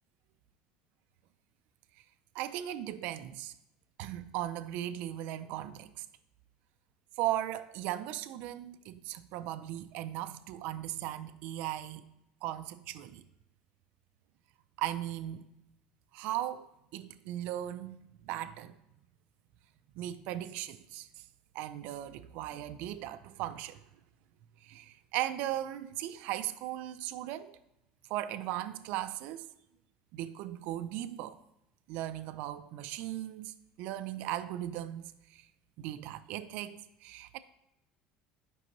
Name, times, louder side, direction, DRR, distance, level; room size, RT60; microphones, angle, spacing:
voice 1, 2.3-3.5 4.0-6.1 7.2-12.1 12.4-13.2 14.8-15.5 16.1-16.7 16.9-18.0 18.2-18.7 19.9-21.2 21.5-23.8 24.6-27.6 28.1-29.5 30.1-31.4 31.9-35.5 35.8-37.4, right 13 dB, 60° right, 0.4 m, -37 dB
11.5 x 5.4 x 3.0 m
cardioid pair, 170°, 3 cm